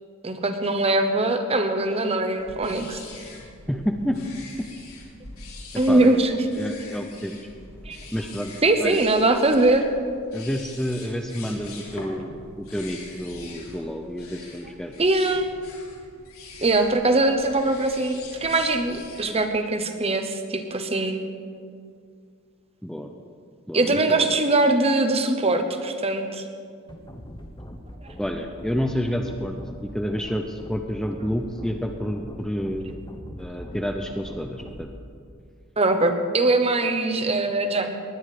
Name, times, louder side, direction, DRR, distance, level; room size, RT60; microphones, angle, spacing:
voice 1, 0.2-3.0 5.8-6.4 7.9-8.0 8.6-9.8 15.0-15.5 16.6-21.3 23.7-26.4 35.8-38.0, right 2 dB, 30° right, 7 dB, 1.0 m, -22 dB
sound 1, 2.4-19.4, left 3 dB, 80° left, 3.3 m, -44 dB
voice 2, 3.7-4.2 5.9-6.2 6.6-7.4 8.1-8.5 8.8-9.0 10.3-12.3 12.6-14.9 22.8-23.1 23.7-24.3 28.2-29.6 29.8-33.0 33.4-34.9, equal, 5° left, 3 dB, 0.6 m, -29 dB
sound 2, 26.9-34.9, equal, 20° left, 1.1 m, -41 dB
20.0 x 9.6 x 5.0 m, 2.2 s
head